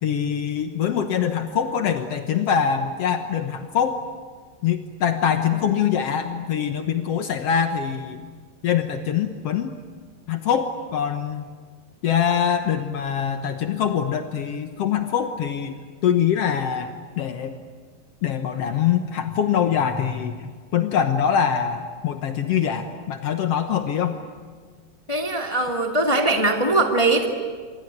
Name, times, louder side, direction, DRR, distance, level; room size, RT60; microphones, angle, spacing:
voice 1, 0.0-4.0 4.6-8.3 8.6-9.7 10.3-11.4 12.0-17.5 18.2-24.2, left 8 dB, 80° left, 7 dB, 1.3 m, -24 dB
voice 2, 25.1-27.3, right 2 dB, 20° left, 2 dB, 0.8 m, -21 dB
26.5 x 23.5 x 9.4 m, 1.5 s
omnidirectional pair, 4.5 m